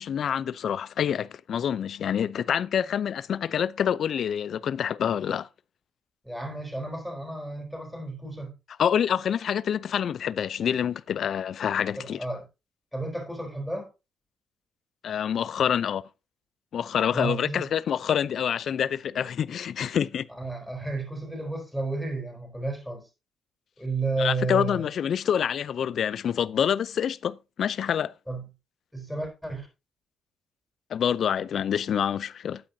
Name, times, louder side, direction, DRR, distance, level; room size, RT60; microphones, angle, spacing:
voice 1, 0.0-5.5 8.8-12.2 15.0-16.1 16.7-20.3 24.2-28.1 30.9-32.6, left 8 dB, 60° left, 0.5 m, -27 dB
voice 2, 6.2-8.5 12.0-12.4 12.9-13.9 17.1-17.6 20.3-23.1 23.8-24.9 28.3-28.4 28.9-29.7, right 3 dB, ahead, 4.0 m, -32 dB
12.0 x 8.8 x 2.7 m
cardioid pair, 90°, 0 cm